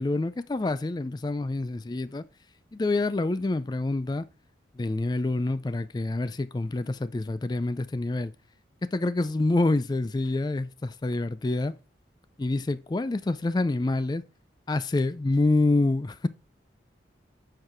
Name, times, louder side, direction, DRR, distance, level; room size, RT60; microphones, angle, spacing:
voice 1, 0.0-2.2 2.7-4.3 4.8-8.3 8.8-11.7 12.4-14.2 14.7-16.3, left 2 dB, 20° left, 0.3 m, -27 dB
7.7 x 4.8 x 4.4 m
head